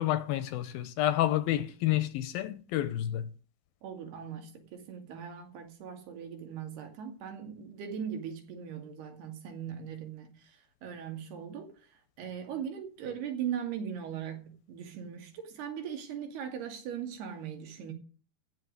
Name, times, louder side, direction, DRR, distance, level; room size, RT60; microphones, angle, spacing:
voice 1, 0.0-3.3, left 13 dB, 80° left, 2.4 m, -29 dB
voice 2, 3.8-17.9, right 8 dB, 80° right, 4.4 m, -39 dB
15.0 x 5.4 x 9.6 m
omnidirectional pair, 4.5 m